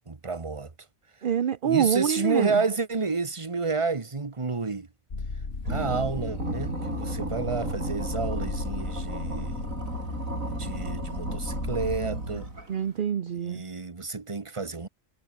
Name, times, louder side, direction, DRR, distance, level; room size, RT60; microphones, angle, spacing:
voice 1, 0.1-0.7 1.6-4.9 5.7-9.7 10.4-12.5 13.4-14.9, right 4 dB, 25° right, 1.3 m, -30 dB
voice 2, 1.2-2.6 12.7-13.6, right 8 dB, 45° right, 0.8 m, -26 dB
sound 1, 5.1-12.0, left 4 dB, 50° left, 2.5 m, -35 dB
sound 2, 5.6-12.9, right 2 dB, 90° right, 6.9 m, -34 dB
omnidirectional pair, 1.4 m